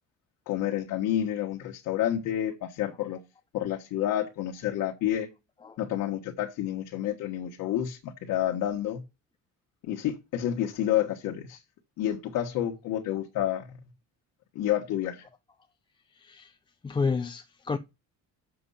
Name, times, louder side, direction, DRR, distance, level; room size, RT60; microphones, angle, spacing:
voice 1, 0.5-3.2 3.5-5.3 5.8-9.0 9.8-11.6 12.0-13.8 14.5-15.2, left 11 dB, 70° left, 1.6 m, -29 dB
voice 2, 16.2-16.5 16.8-17.8, left 4 dB, 15° left, 0.4 m, -30 dB
7.2 x 7.0 x 5.6 m
cardioid pair, 145°, 31 cm